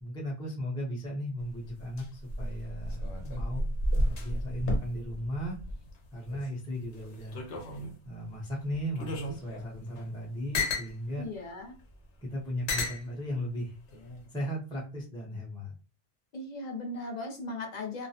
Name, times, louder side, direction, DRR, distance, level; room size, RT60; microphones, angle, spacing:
voice 1, 0.0-3.6 3.9-5.6 6.1-7.7 8.1-11.2 12.2-13.7 14.3-15.7, equal, 5° left, -4 dB, 0.5 m, -36 dB
sound 1, 1.4-6.5 6.8-8.1 8.7-10.9 11.8-11.9 12.7-13.0 13.9-14.3, left 1 dB, 85° left, 0.9 m, -33 dB
voice 2, 11.2-11.8 16.3-18.1, left 2 dB, 50° left, 2 dB, 0.6 m, -37 dB
2.4 x 2.0 x 2.7 m, 0.33 s
omnidirectional pair, 1.2 m